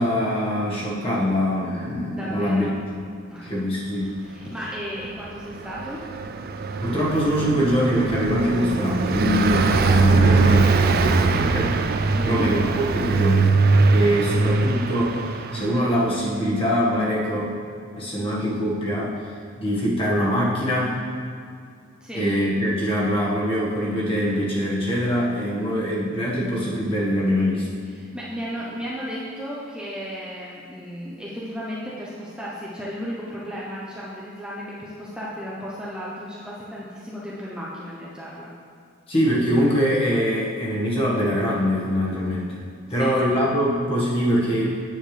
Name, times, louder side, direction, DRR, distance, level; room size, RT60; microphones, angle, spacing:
voice 1, 0.0-2.7 3.4-4.1 6.8-11.8 12.2-13.6 13.9-17.6 18.0-19.2 19.6-21.0 22.1-27.7 39.1-42.6 42.9-44.8, equal, 25° left, -6 dB, 1.6 m, -23 dB
voice 2, 2.1-2.7 3.3-3.5 4.0-6.0 12.1-12.5 22.0-22.3 27.9-38.5 42.9-43.2, equal, 5° right, -7 dB, 0.8 m, -34 dB
Car passing by, 5.1-16.1, right 4 dB, 45° right, 0.4 m, -21 dB
9.2 x 7.0 x 3.4 m, 2.3 s
head